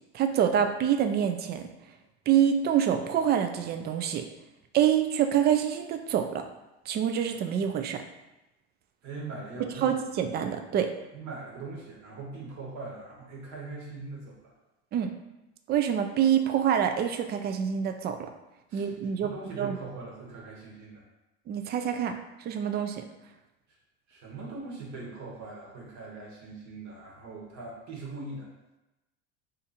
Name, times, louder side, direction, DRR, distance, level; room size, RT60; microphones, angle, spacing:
voice 1, 0.1-1.6 2.3-4.2 4.7-6.5 6.9-8.0 9.8-10.9 14.9-15.1 15.7-18.3 18.7-19.8 21.5-23.0, right 9 dB, 30° right, 6 dB, 0.4 m, -26 dB
voice 2, 9.0-9.9 11.1-14.5 18.7-18.9 19.2-21.0 24.1-28.5, right 3 dB, 55° right, -2 dB, 1.3 m, -41 dB
2.6 x 2.5 x 4.1 m, 0.99 s
hypercardioid pair, 85°, 35 cm